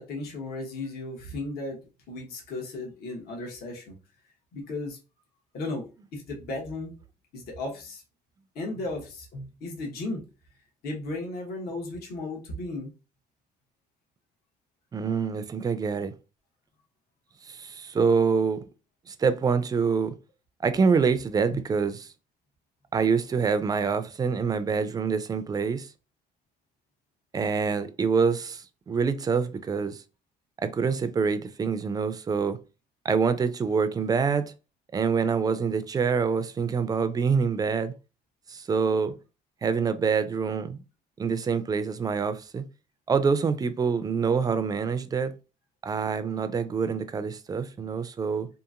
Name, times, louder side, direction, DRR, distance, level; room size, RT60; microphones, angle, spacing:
voice 1, 0.0-1.8 2.1-3.9 4.5-5.0 5.5-5.8 6.1-6.9 7.3-8.0 8.5-10.2 10.8-12.9 21.5-21.6, left 2 dB, 65° left, 1.0 m, -35 dB
voice 2, 14.9-16.1 17.5-18.6 19.1-20.1 20.6-22.0 22.9-25.9 27.3-30.0 30.6-32.6 33.0-34.5 34.9-37.9 38.5-39.1 39.6-40.8 41.2-42.6 43.1-45.3 45.8-48.5, right 5 dB, 20° right, 0.3 m, -26 dB
2.8 x 2.5 x 2.4 m
cardioid pair, 110°, 17 cm